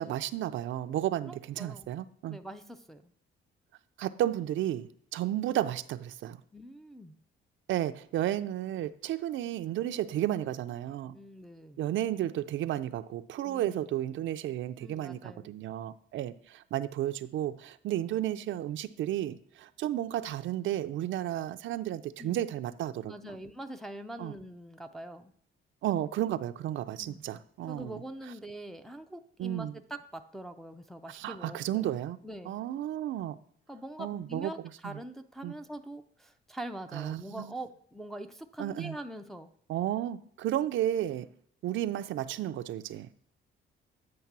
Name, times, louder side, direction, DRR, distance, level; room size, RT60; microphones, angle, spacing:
voice 1, 0.0-2.4 4.0-6.4 7.7-11.2 11.8-23.3 24.2-24.3 25.8-28.0 29.4-29.7 31.1-32.2 32.5-33.4 34.0-34.5 34.8-35.0 35.4-35.5 36.9-37.5 38.6-38.9 39.7-41.3 41.6-43.1, right 12 dB, 70° right, 11 dB, 0.4 m, -33 dB
voice 2, 1.3-1.9 2.3-3.1 6.5-7.2 11.1-11.8 13.4-13.8 14.8-15.5 22.2-22.4 23.1-25.3 27.0-27.2 27.7-31.9 32.2-32.6 33.7-34.6 34.8-39.5, right 1 dB, ahead, 5 dB, 0.4 m, -43 dB
8.6 x 3.2 x 5.9 m, 0.64 s
cardioid pair, 140°, 20 cm